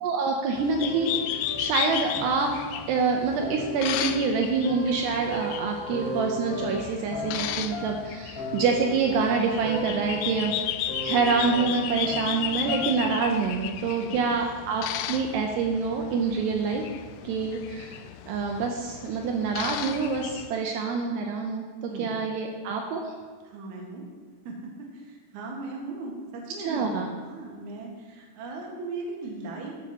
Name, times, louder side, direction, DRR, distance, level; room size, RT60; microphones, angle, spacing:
voice 1, 0.0-2.5 2.9-10.5 11.0-16.8 17.2-18.0 18.3-23.1 26.7-27.1, right 4 dB, 80° right, 2 dB, 2.8 m, -26 dB
sound 1, 0.6-20.5, left 11 dB, 85° left, 2.2 m, -35 dB
sound 2, 0.7-3.0 3.4-13.1, equal, 20° left, 1.4 m, -36 dB
voice 2, 23.4-24.0 24.4-29.7, right 3 dB, 55° right, -1 dB, 2.5 m, -38 dB
12.5 x 11.5 x 3.0 m, 1.5 s
omnidirectional pair, 5.0 m